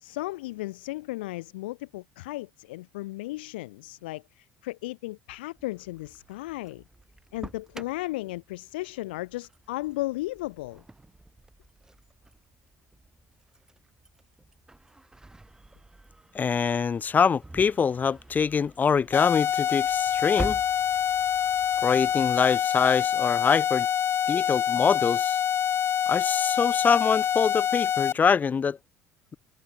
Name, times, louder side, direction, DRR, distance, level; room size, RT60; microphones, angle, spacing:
voice 1, 0.0-6.8 7.3-10.8, left 19 dB, 85° left, 1.4 m, -35 dB
Engine starting, 5.6-22.5, right 2 dB, 10° right, 3.9 m, -46 dB
voice 2, 16.3-20.6 21.8-23.9 24.3-25.4 26.1-28.8, left 6 dB, 30° left, 0.7 m, -24 dB
sound 1, 19.1-28.1, left 10 dB, 50° left, 1.6 m, -26 dB
hypercardioid pair, 70°, 5 cm